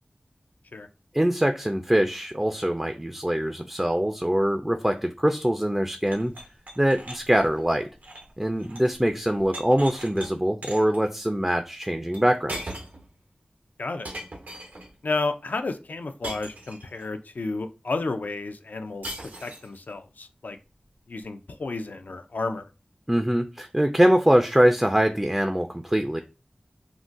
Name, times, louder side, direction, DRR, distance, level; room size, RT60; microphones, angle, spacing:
voice 1, 1.1-6.3 6.8-7.9 8.4-12.7 23.1-26.2, equal, 10° right, 6 dB, 0.3 m, -23 dB
sound 1, 6.0-9.0 9.2-10.3 10.6-11.0 12.1-12.2 12.5-13.1 14.0-14.9 16.2-17.1 19.0-19.8, right 1 dB, 80° right, 0.7 m, -39 dB
voice 2, 15.0-19.1 19.4-20.6 21.1-22.7, left 3 dB, 75° left, 8 dB, 0.4 m, -31 dB
3.8 x 2.1 x 2.5 m, 0.31 s
wide cardioid pair, 40°, 3 cm